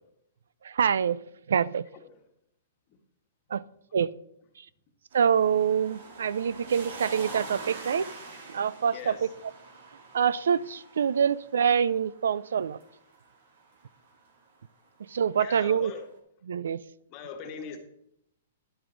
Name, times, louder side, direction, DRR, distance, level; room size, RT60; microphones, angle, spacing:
voice 1, 0.6-1.2 1.5-1.8 3.5-3.6 3.9-4.1 5.1-8.0 8.5-9.3 10.1-12.8 15.1-15.9 16.5-16.8, right 7 dB, 85° right, 19 dB, 0.4 m, -25 dB
sound 1, 5.1-14.2 15.5-15.6, right 3 dB, 65° right, 3.1 m, -45 dB
voice 2, 8.9-9.3 15.4-16.0 17.1-17.8, left 6 dB, 30° left, 5 dB, 1.3 m, -40 dB
11.0 x 7.8 x 3.9 m, 0.76 s
hypercardioid pair, 165°, 0 cm